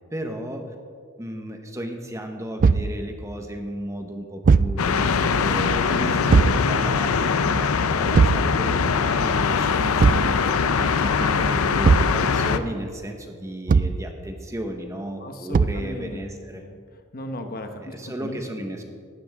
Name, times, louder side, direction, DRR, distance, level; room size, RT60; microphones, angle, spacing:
voice 1, 0.1-0.7 1.2-16.6 17.8-18.8, equal, 15° right, 4 dB, 1.1 m, -34 dB
Thump thud, 2.6-3.0 4.4-4.8 6.3-6.6 8.1-8.5 10.0-10.3 11.8-12.2 13.7-14.0 15.5-15.9, right 5 dB, 40° right, 0.3 m, -17 dB
sound 1, 4.8-12.6, left 5 dB, 85° left, 0.6 m, -22 dB
voice 2, 15.2-18.5, left 1 dB, 45° left, 6 dB, 1.1 m, -37 dB
18.0 x 12.0 x 3.6 m, 2.1 s
head